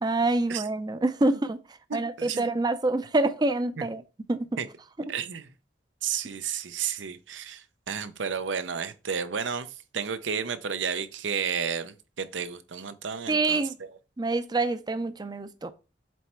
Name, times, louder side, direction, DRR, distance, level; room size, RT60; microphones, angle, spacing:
voice 1, 0.0-4.0 4.3-4.6 13.3-13.8 14.2-15.7, right 2 dB, 20° right, 0.4 m, -26 dB
voice 2, 1.9-2.4 3.8-3.9 4.6-4.7 5.1-5.5 6.0-13.6, right 7 dB, 85° right, 0.7 m, -32 dB
7.6 x 3.2 x 4.4 m
head